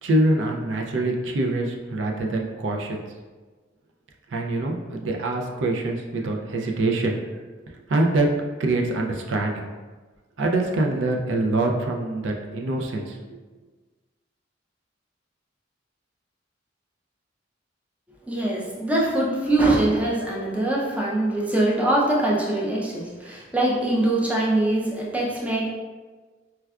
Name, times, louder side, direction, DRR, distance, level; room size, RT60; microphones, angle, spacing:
voice 1, 0.0-3.0 4.3-7.2 7.9-8.3 8.6-9.6 10.4-13.2, right 2 dB, 80° right, 1 dB, 0.4 m, -24 dB
voice 2, 18.3-25.7, right 1 dB, 10° right, -4 dB, 0.5 m, -23 dB
4.4 x 2.2 x 2.3 m, 1.3 s
head